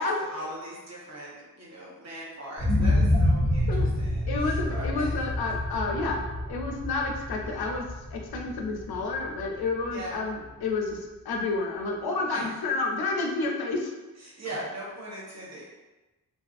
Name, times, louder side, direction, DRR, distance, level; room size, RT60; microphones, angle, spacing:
voice 1, 0.0-5.1 9.9-10.2 12.3-12.5 14.2-15.6, right 1 dB, 45° right, -6 dB, 1.0 m, -40 dB
sound 1, 2.6-10.5 10.9-11.0, left 1 dB, 15° right, 1.0 m, -28 dB
voice 2, 4.3-6.2 6.5-7.8 8.1-13.9, left 3 dB, 90° left, 1 dB, 0.5 m, -30 dB
2.5 x 2.4 x 2.4 m, 1.1 s
wide cardioid pair, 80°, 36 cm